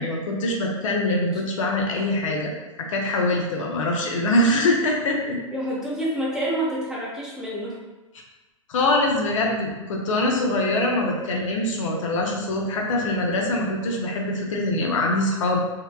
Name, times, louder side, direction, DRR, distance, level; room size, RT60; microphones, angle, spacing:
voice 1, 0.0-2.5 2.8-5.4 8.7-15.6, left 1 dB, 70° left, 0 dB, 0.5 m, -23 dB
voice 2, 5.5-7.8, right 1 dB, 5° right, -7 dB, 0.7 m, -28 dB
2.8 x 2.1 x 2.3 m, 1.1 s
hypercardioid pair, 105°, 17 cm